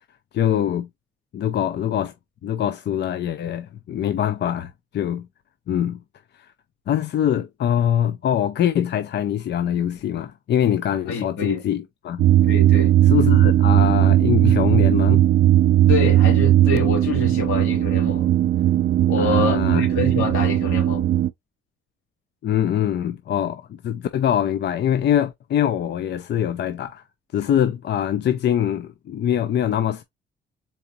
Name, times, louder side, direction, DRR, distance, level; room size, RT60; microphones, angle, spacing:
voice 1, 0.3-0.9 1.3-2.1 2.4-5.3 5.7-6.0 6.3-6.5 6.9-12.3 13.1-15.3 19.2-19.9 22.4-27.0 27.3-30.0, left 10 dB, 60° left, 0.6 m, -23 dB
voice 2, 11.1-11.6 12.4-12.9 15.9-18.3 19.1-21.1, left 3 dB, 90° left, 2.5 m, -26 dB
sound 1, 12.2-21.3, right 13 dB, 55° right, 0.4 m, -17 dB
4.3 x 3.7 x 2.8 m
cardioid pair, 90°, 20 cm